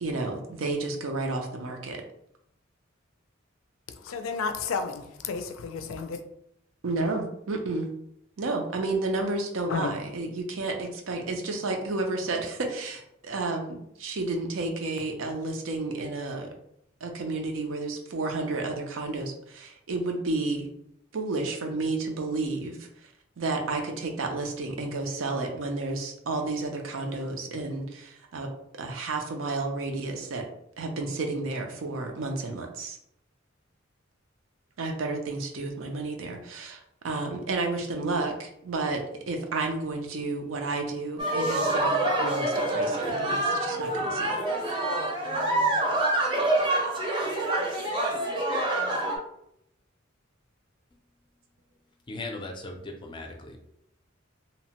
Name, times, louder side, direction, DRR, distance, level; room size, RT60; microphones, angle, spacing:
voice 1, 0.0-2.0 6.8-7.9 8.4-16.5 17.0-20.7 21.1-22.9 23.4-30.5 30.8-33.0 34.8-44.4, right 3 dB, 80° right, 3 dB, 0.5 m, -31 dB
voice 2, 4.0-6.2 9.7-9.9, left 5 dB, 90° left, 8 dB, 0.4 m, -32 dB
sound 1, 41.2-49.2, right 1 dB, 25° right, 0.6 m, -26 dB
voice 3, 52.1-53.6, left 2 dB, 25° left, 3 dB, 0.4 m, -38 dB
2.8 x 2.1 x 2.8 m, 0.75 s
head